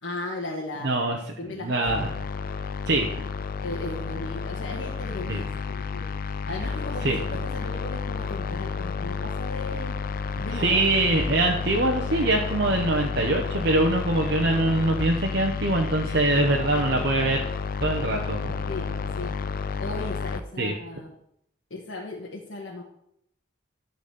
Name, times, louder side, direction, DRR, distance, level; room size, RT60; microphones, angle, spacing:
voice 1, 0.0-2.1 3.6-9.9 10.4-10.8 16.0-17.1 18.7-18.8 19.2-19.3 19.8-21.1 21.7-22.8, left 2 dB, 85° left, -2 dB, 1.4 m, -37 dB
voice 2, 0.8-1.2 1.6-2.1 2.9-3.1 5.3-5.4 7.0-7.2 10.5-17.4 17.8-18.4 20.6-20.8, right 2 dB, 60° right, 1 dB, 0.9 m, -23 dB
sound 1, 1.9-20.4, left 5 dB, 50° left, 0.5 m, -31 dB
12.0 x 4.1 x 6.8 m, 0.76 s
head